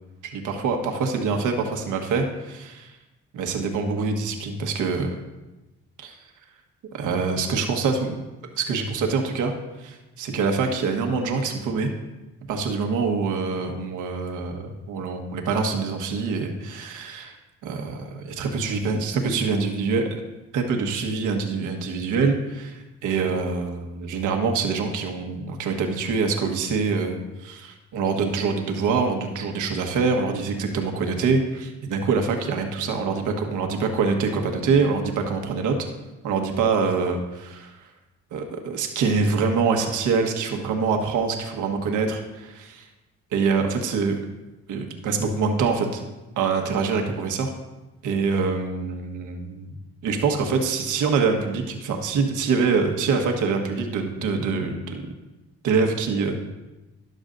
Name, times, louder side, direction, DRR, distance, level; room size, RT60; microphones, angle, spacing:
voice 1, 0.2-2.9 3.3-5.1 6.0-6.2 6.9-8.2 8.6-9.5 9.8-11.9 12.5-17.4 17.6-20.2 20.5-35.8 36.2-37.7 38.3-42.9 43.3-44.2 44.7-46.0 46.4-47.5 48.0-49.7 50.0-55.0 55.6-56.4, right 4 dB, 85° right, 4 dB, 1.4 m, -25 dB
13.0 x 11.0 x 2.6 m, 1.1 s
cardioid pair, 90°, 30 cm